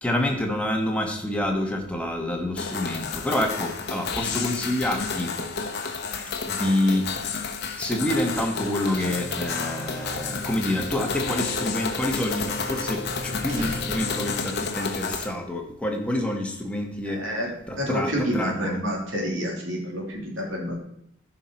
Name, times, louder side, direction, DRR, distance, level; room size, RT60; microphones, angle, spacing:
voice 1, 0.0-5.3 6.5-7.1 7.8-17.4 17.7-18.8, left 1 dB, 5° left, 1 dB, 1.4 m, -27 dB
sound 1, 2.6-15.3, left 5 dB, 55° left, 1.1 m, -31 dB
sound 2, 8.7-14.4, equal, 35° right, 2.7 m, -45 dB
sound 3, 8.9-15.0, right 1 dB, 10° right, 1.1 m, -39 dB
voice 2, 17.1-17.5 17.8-20.8, equal, 65° right, -1 dB, 2.9 m, -28 dB
14.0 x 5.6 x 4.5 m, 0.73 s
head